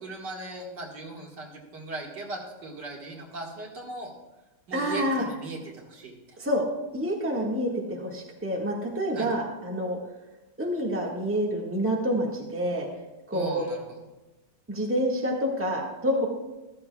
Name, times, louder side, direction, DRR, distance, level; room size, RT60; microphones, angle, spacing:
voice 1, 0.0-4.1 4.7-6.4 9.1-9.3 13.3-13.8, right 2 dB, 70° right, -1 dB, 2.5 m, -38 dB
voice 2, 4.7-5.2 6.4-6.6 6.9-10.0 10.6-12.9 13.3-13.6 14.7-16.3, equal, 10° right, -2 dB, 1.5 m, -28 dB
14.0 x 14.0 x 2.3 m, 1.0 s
omnidirectional pair, 1.9 m